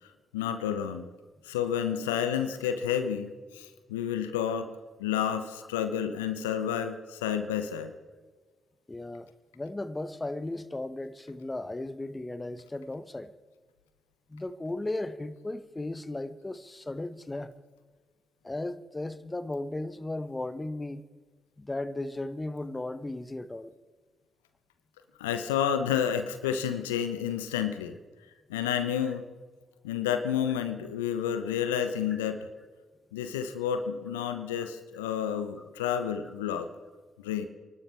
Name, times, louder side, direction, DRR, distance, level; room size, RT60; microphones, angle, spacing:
voice 1, 0.3-1.0 1.4-4.7 5.0-7.9 25.2-28.0 28.5-29.2 29.8-32.5 33.1-36.7 37.2-37.5, left 8 dB, 85° left, 0.8 m, -30 dB
voice 2, 8.9-13.3 14.3-17.5 18.4-21.0 21.6-23.7 32.1-32.2, left 2 dB, 20° left, 1.0 m, -36 dB
29.0 x 12.5 x 3.4 m
hypercardioid pair, 40°, 0 cm